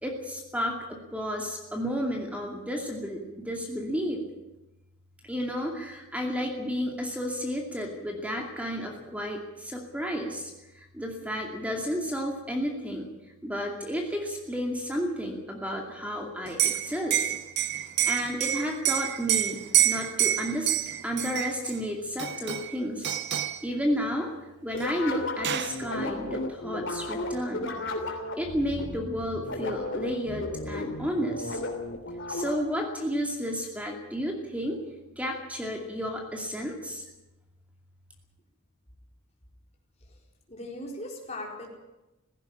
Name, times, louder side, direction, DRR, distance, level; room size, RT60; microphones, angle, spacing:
voice 1, 0.0-4.2 5.3-13.1 13.4-17.3 18.1-19.6 19.8-20.7 21.0-23.2 23.6-24.3 24.6-27.7 28.4-31.6 32.3-34.8 35.2-37.0, equal, 5° right, 1 dB, 2.4 m, -32 dB
Liquid, 16.5-21.8 22.2-22.8 23.0-23.6 24.8-24.9 25.2-25.8, right 12 dB, 50° right, 0.9 m, -27 dB
sound 1, 24.7-32.8, left 2 dB, 60° left, 3.2 m, -34 dB
voice 2, 40.5-41.7, left 1 dB, 30° left, 0 dB, 4.4 m, -38 dB
16.5 x 16.0 x 9.9 m, 1.0 s
head